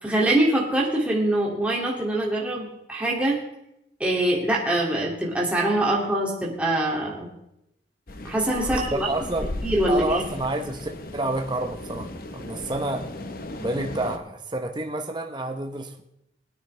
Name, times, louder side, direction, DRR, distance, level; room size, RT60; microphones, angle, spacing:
voice 1, 0.0-3.4 4.0-7.3 8.2-9.1 9.6-10.2, right 1 dB, 5° right, -4 dB, 2.4 m, -24 dB
sound 1, 8.1-14.2, left 1 dB, 55° left, 1.0 m, -36 dB
voice 2, 8.7-9.5 9.9-13.1 13.6-16.0, right 2 dB, 25° right, 4 dB, 0.8 m, -29 dB
21.0 x 9.6 x 3.3 m, 0.82 s
head